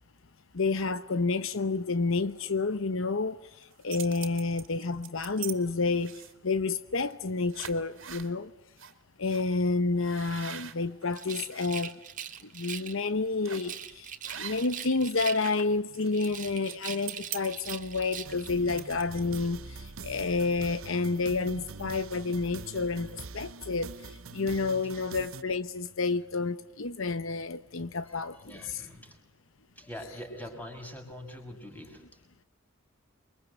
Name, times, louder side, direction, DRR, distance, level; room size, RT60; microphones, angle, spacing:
voice 1, 0.5-3.4 3.8-8.5 9.2-11.9 12.5-14.1 14.4-23.9 24.3-28.4, left 3 dB, 65° left, 0.9 m, -29 dB
sound 1, 3.6-5.6 6.0-6.5 7.1-7.2 7.5-8.3 8.8-8.9 9.3-9.4 10.0-11.7 12.1-12.4 13.4-13.8 14.3-14.9 15.1-19.6, right 11 dB, 65° right, 2.8 m, -43 dB
Rattle, 11.1-13.0 13.5-15.7 16.1-18.6, right 8 dB, 40° right, 1.9 m, -41 dB
sound 2, 18.2-25.4, right 4 dB, 80° right, 1.0 m, -44 dB
voice 2, 28.0-29.2 29.8-32.2, equal, 10° left, 6.0 m, -44 dB
28.0 x 24.0 x 8.1 m
head